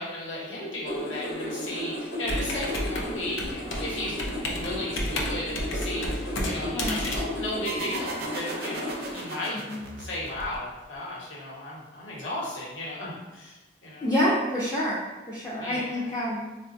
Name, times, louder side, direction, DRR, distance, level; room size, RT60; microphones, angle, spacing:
voice 1, 0.0-9.6 10.0-14.1 15.6-16.1, left 1 dB, 75° left, -6 dB, 1.0 m, -35 dB
sound 1, 0.9-9.1, equal, 50° left, 1.1 m, -35 dB
Computer keyboard, 2.2-8.2, left 1 dB, 90° left, 0.5 m, -32 dB
voice 2, 6.7-7.0 9.7-9.9 14.0-15.0 15.3-16.5, equal, 20° left, -7 dB, 0.4 m, -27 dB
sound 2, 7.7-11.0, right 2 dB, 55° right, 0.5 m, -37 dB
3.8 x 2.3 x 2.5 m, 1.1 s
head